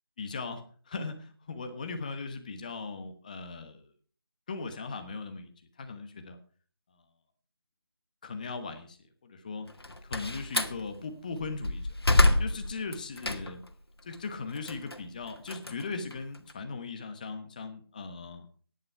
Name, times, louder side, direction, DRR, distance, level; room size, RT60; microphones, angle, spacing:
voice 1, 0.2-3.9 4.5-5.5 5.8-6.4 6.9-7.0 8.2-9.0 9.2-9.7 10.1-11.9 12.4-13.6 14.0-18.5, left 4 dB, 20° left, 8 dB, 1.2 m, -38 dB
Slam, 9.7-10.8 11.4-13.7 14.1-16.5, left 2 dB, 85° left, 2.0 m, -27 dB
13.5 x 10.0 x 4.6 m, 0.43 s
figure-of-eight pair, 170°, 13 cm